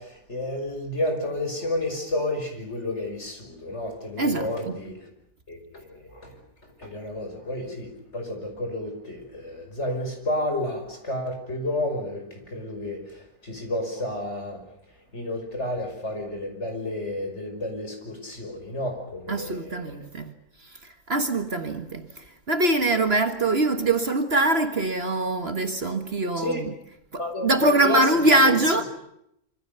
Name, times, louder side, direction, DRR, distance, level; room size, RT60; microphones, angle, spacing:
voice 1, 0.0-5.0 5.5-6.4 6.6-14.6 15.1-20.0 26.4-26.6 27.2-28.6, left 1 dB, 50° left, 6.1 m, -31 dB
voice 2, 4.2-4.8 19.3-20.3 20.6-26.7 27.1-28.8, right 2 dB, 45° right, 1.8 m, -23 dB
26.5 x 25.0 x 6.9 m
omnidirectional pair, 1.5 m